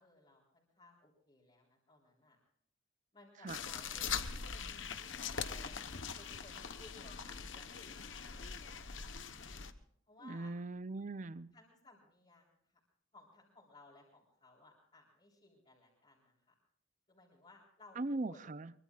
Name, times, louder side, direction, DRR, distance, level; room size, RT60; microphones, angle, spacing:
voice 1, 0.0-2.4 3.1-4.4 5.3-5.9 6.2-8.7 10.1-10.5 11.5-12.8 13.1-16.5 17.1-18.4, left 2 dB, 30° left, -4 dB, 3.9 m, -61 dB
sound 1, 3.5-9.7, left 6 dB, 65° left, 1.1 m, -42 dB
voice 2, 10.2-11.5 18.0-18.7, right 2 dB, 40° right, 15 dB, 0.6 m, -40 dB
23.5 x 23.5 x 2.5 m, 0.68 s
head